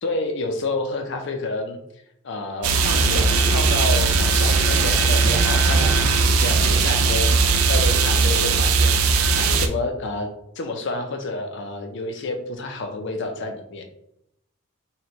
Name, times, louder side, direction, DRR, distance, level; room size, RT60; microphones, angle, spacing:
voice 1, 0.0-1.8 2.2-10.3 10.6-13.8, left 2 dB, 55° left, 5 dB, 0.5 m, -29 dB
sound 1, 2.6-9.7, right 4 dB, 75° right, 0.4 m, -19 dB
4.1 x 2.2 x 2.8 m, 0.78 s
head